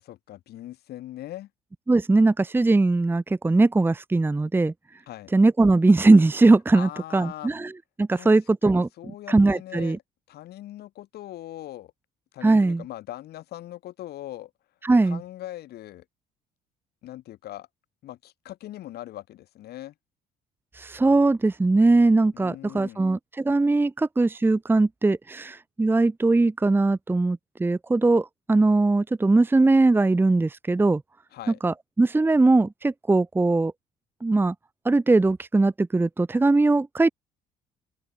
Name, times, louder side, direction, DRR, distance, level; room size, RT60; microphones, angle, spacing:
voice 1, 0.0-1.5 5.1-5.3 6.7-7.5 8.1-8.3 8.6-10.0 10.3-11.9 12.3-14.5 15.0-16.0 17.0-17.7 18.0-19.9 22.3-23.1 31.3-31.6, left 14 dB, 70° left, 5.2 m, -40 dB
voice 2, 1.9-4.7 5.3-7.7 8.0-8.9 9.3-10.0 12.4-12.8 14.8-15.2 20.7-31.0 31.6-33.7 34.2-34.5 34.8-37.1, right 2 dB, 10° right, 0.9 m, -20 dB
open air
cardioid pair, 110°, 17 cm